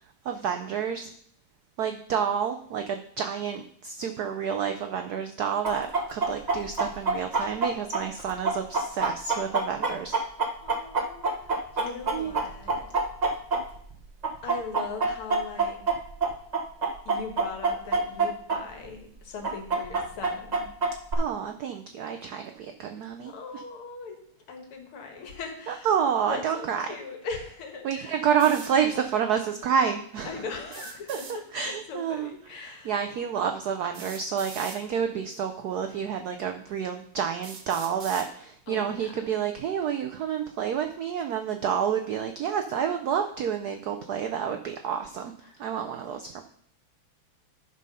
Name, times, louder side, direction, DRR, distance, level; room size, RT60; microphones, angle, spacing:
voice 1, 0.2-1.1 1.8-10.1 12.1-12.3 21.2-23.6 25.7-26.8 27.8-30.4 31.1-31.2 31.5-32.3 32.8-45.3 45.6-46.4, right 7 dB, 85° right, 6 dB, 0.8 m, -29 dB
Chicken rooster, 5.6-13.9 14.2-18.6 18.8-18.9 19.4-21.1, right 3 dB, 45° right, 0.5 m, -26 dB
voice 2, 10.6-12.9 14.4-15.8 17.1-20.7 23.3-24.2 24.5-25.9 26.3-28.3 30.2-31.4 31.9-33.0 38.7-39.5 45.4-45.6, left 4 dB, 80° left, 3 dB, 2.4 m, -40 dB
sound 1, 28.4-28.7 30.7-31.4 32.8-32.9 33.9-34.8 35.8-35.9 36.6-36.7 37.4-38.3, right 5 dB, 70° right, 1.9 m, -42 dB
9.7 x 5.5 x 5.4 m, 0.63 s
omnidirectional pair, 2.4 m